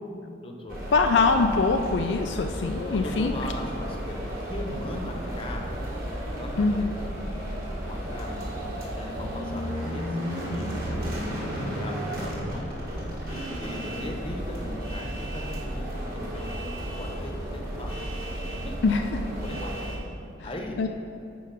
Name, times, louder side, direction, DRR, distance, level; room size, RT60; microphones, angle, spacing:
voice 1, 0.4-0.8 2.9-5.7 6.4-6.9 7.8-10.2 10.5-10.8 11.5-12.6 13.6-18.0 18.6-18.8 19.4-19.8 20.4-20.8, left 1 dB, 25° left, 1 dB, 0.9 m, -38 dB
sound 1, 0.7-20.0, equal, 50° right, 1.7 m, -33 dB
voice 2, 0.9-3.3 6.6-6.9 18.8-19.0 20.8-20.9, left 4 dB, 65° left, 5 dB, 0.4 m, -23 dB
9.2 x 4.7 x 5.8 m, 2.8 s
head